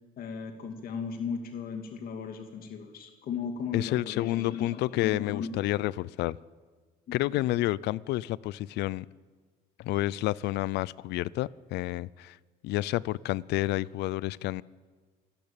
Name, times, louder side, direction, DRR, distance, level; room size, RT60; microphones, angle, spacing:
voice 1, 0.2-5.7 7.1-7.4, left 6 dB, 60° left, 2.3 m, -36 dB
voice 2, 3.7-6.4 7.1-9.1 9.8-12.4 12.6-14.6, left 17 dB, 80° left, 0.5 m, -30 dB
27.0 x 12.5 x 8.9 m
cardioid pair, 110°, 17 cm